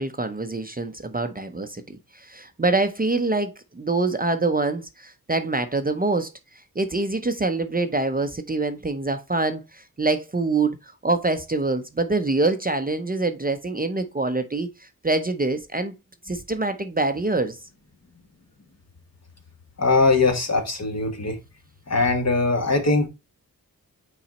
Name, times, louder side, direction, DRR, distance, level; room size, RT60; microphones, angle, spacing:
voice 1, 0.0-6.3 6.8-15.9 16.2-17.6, right 3 dB, 25° right, 0.7 m, -25 dB
voice 2, 19.8-21.4 21.9-23.1, left 3 dB, 45° left, 1.5 m, -21 dB
5.7 x 4.0 x 4.1 m
wide cardioid pair, 65°, 36 cm